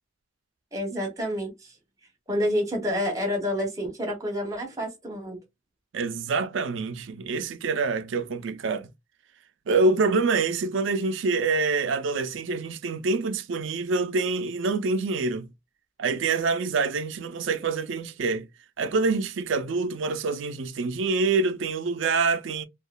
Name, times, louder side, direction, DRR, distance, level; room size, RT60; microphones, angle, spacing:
voice 1, 0.7-1.7 2.3-5.4, equal, 15° right, 1.0 m, -28 dB
voice 2, 5.9-8.9 9.7-15.5 16.0-18.5 18.8-22.7, right 4 dB, 65° right, 0.4 m, -26 dB
2.9 x 2.3 x 2.2 m
head